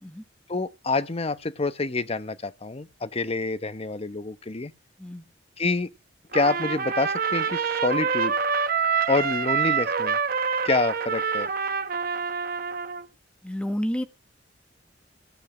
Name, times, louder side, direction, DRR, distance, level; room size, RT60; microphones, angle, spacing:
voice 1, 0.5-4.7 5.6-5.9 6.3-8.3 9.1-10.2 10.6-11.5, left 3 dB, 35° left, 0.9 m, -27 dB
Trumpet, 6.3-13.1, right 6 dB, 55° right, 1.1 m, -26 dB
voice 2, 13.4-14.0, equal, 5° left, 1.3 m, -30 dB
15.0 x 8.2 x 6.2 m
head